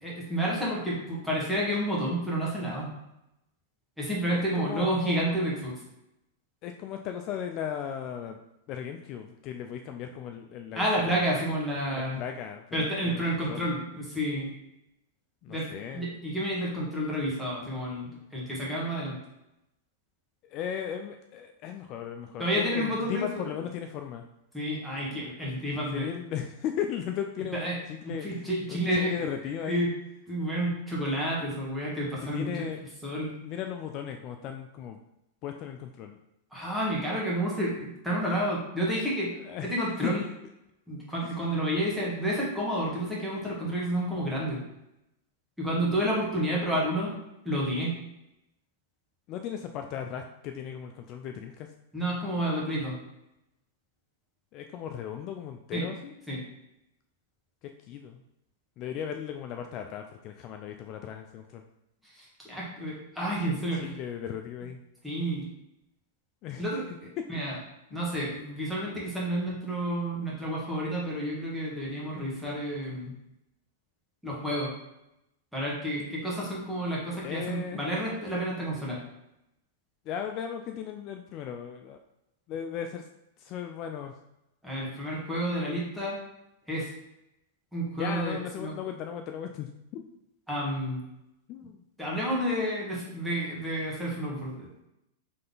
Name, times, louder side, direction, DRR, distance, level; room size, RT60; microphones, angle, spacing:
voice 1, 0.0-2.9 4.0-5.7 10.7-12.2 12.7-14.5 15.5-15.7 15.9-19.1 22.4-23.4 24.5-26.1 27.6-27.7 28.2-29.1 29.7-29.9 30.3-32.5 33.0-33.3 36.5-39.3 39.6-40.2 40.9-44.6 45.6-47.1 47.4-48.0 51.9-52.9 55.7-55.8 56.3-56.4 62.1-63.9 65.0-65.5 66.6-67.5 67.9-73.1 74.2-74.7 75.5-79.0 84.6-86.2 86.7-86.9 87.7-88.7 90.5-91.0 92.0-94.8, right 1 dB, ahead, -6 dB, 1.6 m, -30 dB
voice 2, 4.3-5.4 6.6-8.4 8.7-11.3 11.9-13.7 15.4-16.1 20.4-24.2 25.9-29.9 32.2-32.8 33.4-35.0 35.4-36.2 39.4-39.7 40.0-40.1 41.2-41.4 49.3-51.7 54.5-56.4 57.9-58.2 58.8-61.6 63.4-64.8 66.4-66.7 67.2-67.3 67.9-68.0 77.2-77.8 80.1-82.0 82.5-83.1 83.4-84.2 87.9-90.0 91.5-91.8, left 9 dB, 40° left, 5 dB, 0.3 m, -37 dB
3.7 x 3.3 x 3.9 m, 0.87 s
hypercardioid pair, 130°, 0 cm